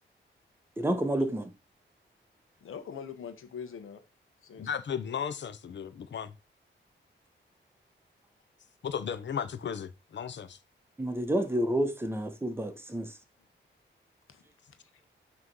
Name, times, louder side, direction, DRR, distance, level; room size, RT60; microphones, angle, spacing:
voice 1, 0.8-1.5 11.0-13.2, right 1 dB, 10° right, 1.2 m, -29 dB
voice 2, 2.6-4.0 4.4-4.7 14.3-14.4 14.7-14.8, left 7 dB, 90° left, 1.1 m, -43 dB
voice 3, 4.6-6.3 8.8-10.6, left 7 dB, 65° left, 0.8 m, -35 dB
6.2 x 3.2 x 5.4 m
cardioid pair, 95°, 20 cm